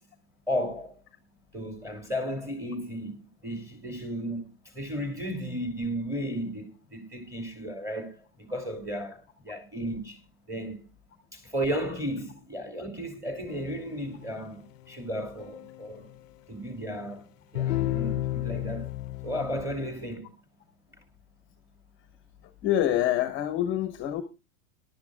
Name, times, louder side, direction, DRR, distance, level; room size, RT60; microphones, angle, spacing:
voice 1, 0.5-0.9 1.5-10.2 10.5-10.8 11.3-16.1 16.5-18.9 19.2-20.3, equal, 5° right, 2.7 m, -34 dB
sound 1, 13.5-14.3 15.0-16.2 17.6-20.1, left 14 dB, 60° left, 0.7 m, -33 dB
voice 2, 22.6-24.2, left 12 dB, 25° left, 1.0 m, -26 dB
21.0 x 11.5 x 2.3 m
supercardioid pair, 145°, 45 cm